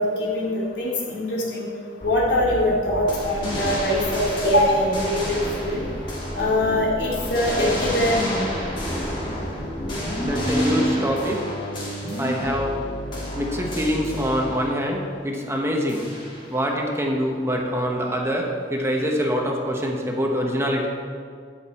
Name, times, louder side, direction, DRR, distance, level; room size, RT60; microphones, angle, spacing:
voice 1, 0.0-1.7 2.0-5.8 6.4-8.5, left 1 dB, 75° left, -5 dB, 3.2 m, -23 dB
sound 1, 2.0-14.4, equal, 45° left, 1.8 m, -33 dB
sound 2, 3.1-6.8 7.1-12.8 13.1-14.8 15.9-16.6, left 1 dB, 30° left, 3.0 m, -33 dB
voice 2, 10.0-11.5 12.0-12.8 13.3-16.1 16.5-20.9, equal, 15° right, 0 dB, 1.2 m, -24 dB
12.0 x 9.2 x 4.4 m, 2.1 s
head